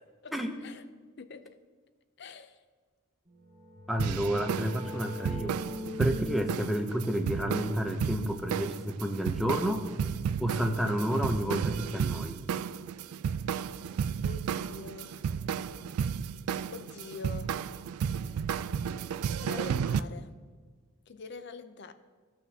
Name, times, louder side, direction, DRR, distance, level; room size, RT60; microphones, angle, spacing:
voice 1, 0.2-0.8 1.2-1.6 2.2-2.6 14.2-15.2 16.7-17.6 19.4-20.3 21.1-21.9, left 4 dB, 50° left, 0.5 m, -44 dB
sound 1, 3.4-9.0, left 2 dB, 35° right, 1.7 m, -42 dB
voice 2, 3.9-5.6 6.0-9.9 10.4-12.4, equal, ahead, 0.6 m, -30 dB
sound 2, 4.0-20.0, right 7 dB, 85° right, 0.3 m, -33 dB
15.5 x 6.0 x 2.7 m
head